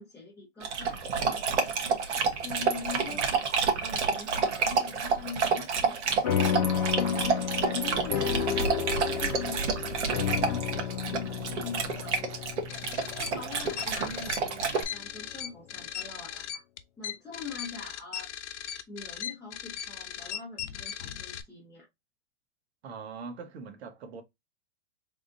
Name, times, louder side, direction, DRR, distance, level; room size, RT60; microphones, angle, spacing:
voice 1, 0.0-1.5 2.3-6.3 6.9-8.8 9.0-12.5 13.1-16.6 17.0-18.3 18.9-21.9, left 5 dB, 5° left, 0.8 m, -42 dB
Dog, 0.6-14.8, right 5 dB, 85° right, 1.4 m, -29 dB
sound 1, 6.2-15.0, left 9 dB, 35° left, 0.5 m, -32 dB
sound 2, 12.7-21.4, left 10 dB, 80° left, 0.8 m, -38 dB
voice 2, 22.8-24.2, right 5 dB, 65° right, 1.3 m, -42 dB
3.9 x 3.6 x 2.6 m
supercardioid pair, 165°, 34 cm